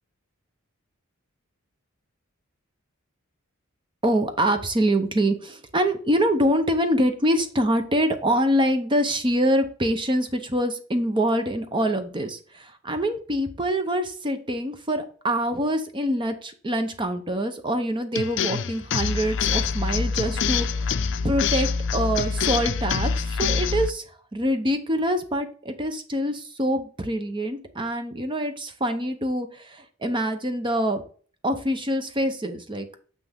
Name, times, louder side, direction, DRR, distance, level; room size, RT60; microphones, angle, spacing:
voice 1, 4.0-20.9 21.2-24.0 24.3-31.0 31.4-32.9, equal, 25° right, 8 dB, 0.8 m, -25 dB
sound 1, 18.2-23.9, left 5 dB, 60° left, 0.5 m, -25 dB
6.6 x 5.9 x 3.5 m, 0.42 s
head